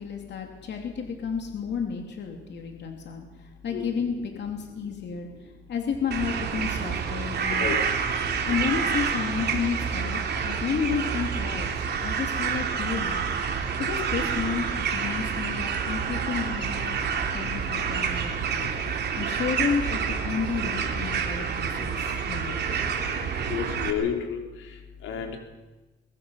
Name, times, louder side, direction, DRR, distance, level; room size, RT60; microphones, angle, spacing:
voice 1, 0.0-5.3 5.7-7.7 8.5-13.2 13.8-17.0 17.3-18.7 19.2-22.8, left 6 dB, 60° left, 3 dB, 2.9 m, -31 dB
sound 1, 6.1-23.9, right 6 dB, 55° right, 3.2 m, -28 dB
voice 2, 23.5-24.4 25.0-25.4, left 8 dB, 85° left, 2 dB, 3.7 m, -29 dB
22.0 x 21.5 x 5.7 m, 1.2 s
cardioid pair, 90°, 20 cm